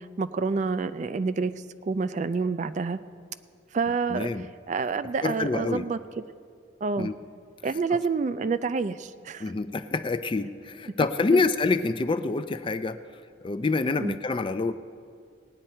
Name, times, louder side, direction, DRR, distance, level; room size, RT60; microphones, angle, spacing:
voice 1, 0.0-1.5 1.8-3.0 3.7-4.3 4.7-6.0 6.8-7.1 7.6-9.5 11.3-11.4 14.0-14.2, right 4 dB, 40° right, 12 dB, 0.3 m, -28 dB
voice 2, 4.1-4.5 5.2-5.8 7.0-7.2 7.9-8.0 9.4-13.0 13.4-14.7, left 3 dB, 30° left, 11 dB, 0.4 m, -26 dB
18.0 x 9.6 x 4.4 m, 2.2 s
head